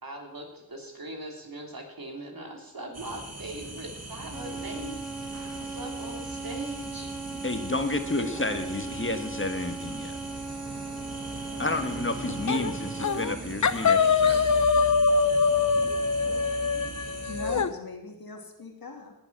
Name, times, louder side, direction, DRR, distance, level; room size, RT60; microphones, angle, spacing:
voice 1, 0.0-4.9 5.5-7.1 8.2-8.8, right 1 dB, 65° right, 1 dB, 3.3 m, -40 dB
sound 1, 2.9-17.6, right 2 dB, 40° right, 2.1 m, -40 dB
sound 2, 4.3-13.3, right 3 dB, ahead, 2.7 m, -38 dB
voice 2, 7.4-10.1 11.6-14.5, left 2 dB, 30° left, 7 dB, 1.6 m, -31 dB
sound 3, 12.5-12.7 13.0-13.3 13.6-17.7, left 5 dB, 50° left, 0.7 m, -23 dB
voice 3, 16.2-16.7 17.3-19.1, left 3 dB, 70° left, 3 dB, 2.3 m, -39 dB
18.5 x 7.2 x 6.1 m, 0.92 s
cardioid pair, 45°, 37 cm